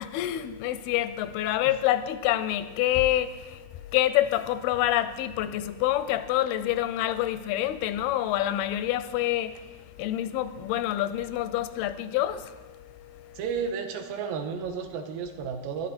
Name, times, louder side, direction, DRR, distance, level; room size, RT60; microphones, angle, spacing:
voice 1, 0.0-13.4, left 13 dB, 85° left, 2.5 m, -27 dB
voice 2, 13.4-15.9, right 6 dB, 75° right, 2.5 m, -32 dB
14.5 x 11.5 x 4.3 m
omnidirectional pair, 4.4 m